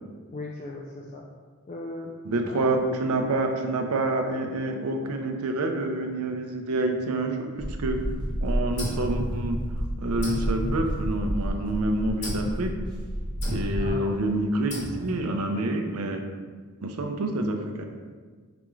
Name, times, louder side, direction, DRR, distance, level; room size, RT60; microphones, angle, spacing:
voice 1, 0.3-1.3 1.7-2.8 13.8-14.0, left 2 dB, 35° left, -3 dB, 0.3 m, -37 dB
voice 2, 2.2-8.1 8.4-9.6 10.0-12.8 13.5-16.3 16.8-17.9, right 2 dB, 75° right, 4 dB, 0.4 m, -27 dB
sound 1, 7.6-14.0, equal, 20° right, 0.6 m, -31 dB
sound 2, 8.8-9.8 10.2-11.5 12.2-12.6 13.4-14.0 14.7-15.3, equal, 55° left, 0.9 m, -34 dB
4.9 x 2.3 x 3.1 m, 1.5 s
head